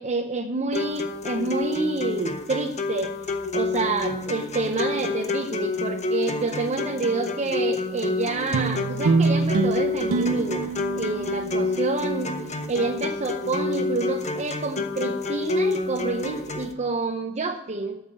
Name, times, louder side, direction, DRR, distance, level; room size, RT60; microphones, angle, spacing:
voice 1, 0.0-10.7 11.0-18.0, right 3 dB, 30° right, 3 dB, 0.7 m, -28 dB
sound 1, 0.7-16.7, left 3 dB, 30° left, 1.0 m, -29 dB
sound 2, 8.5-13.2, right 4 dB, 65° right, 0.5 m, -26 dB
8.4 x 7.2 x 7.9 m, 0.91 s
head